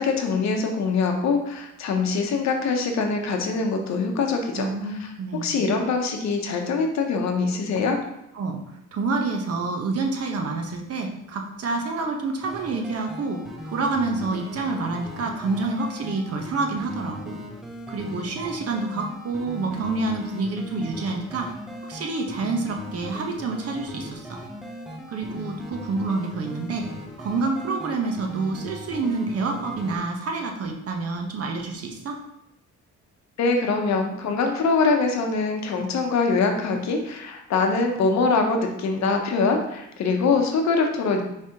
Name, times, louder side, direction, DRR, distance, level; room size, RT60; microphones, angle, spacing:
voice 1, 0.0-4.7 5.4-8.0 33.4-41.2, left 4 dB, 65° left, 4 dB, 0.8 m, -23 dB
voice 2, 4.5-5.6 8.3-8.6 8.9-17.4 17.9-21.5 21.9-24.4 25.1-26.8 27.2-32.2, right 3 dB, 50° right, 2 dB, 0.8 m, -28 dB
sound 1, 12.4-30.0, equal, ahead, 0.6 m, -39 dB
4.9 x 3.3 x 2.8 m, 0.85 s
cardioid pair, 90°, 30 cm